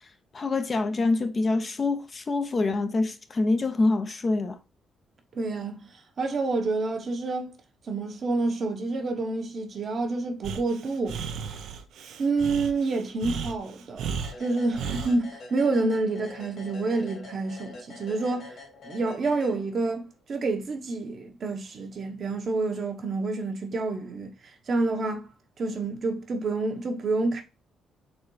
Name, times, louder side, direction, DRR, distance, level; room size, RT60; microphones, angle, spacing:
voice 1, 0.3-4.6, left 3 dB, 35° left, 0.5 m, -25 dB
voice 2, 5.3-5.8 6.2-7.5 7.9-11.2 12.2-14.0 14.4-18.5 18.8-24.3 24.7-25.3 25.6-27.4, right 3 dB, 50° right, 0.9 m, -28 dB
Breathing, 10.4-15.2, right 6 dB, 75° right, 0.5 m, -35 dB
sound 1, 14.2-20.0, left 3 dB, 60° left, 1.9 m, -45 dB
4.1 x 3.3 x 3.1 m
cardioid pair, 90°, 0 cm